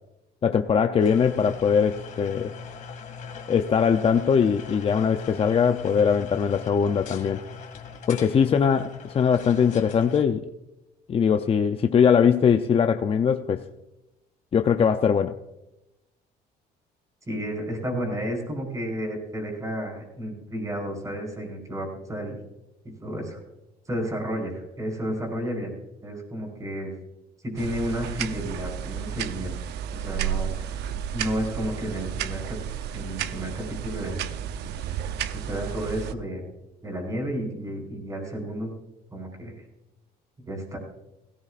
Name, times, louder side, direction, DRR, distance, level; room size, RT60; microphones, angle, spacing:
voice 1, 0.4-2.5 3.5-7.4 8.1-10.5 11.1-13.7 14.5-15.4, left 7 dB, 35° left, 7 dB, 0.6 m, -21 dB
sound 1, 1.0-10.2, left 6 dB, 50° left, 2.1 m, -40 dB
voice 2, 17.3-22.4 23.0-23.4 23.9-25.7 26.0-26.9 27.4-29.5 29.9-30.8 31.1-32.6 32.9-34.3 34.6-34.7 35.3-36.4 36.8-38.7 39.1-39.6 40.4-40.8, equal, 20° right, 1 dB, 4.8 m, -32 dB
sound 2, 27.6-36.1, right 9 dB, 80° right, 0.7 m, -32 dB
17.0 x 17.0 x 2.5 m, 0.95 s
cardioid pair, 110°, 17 cm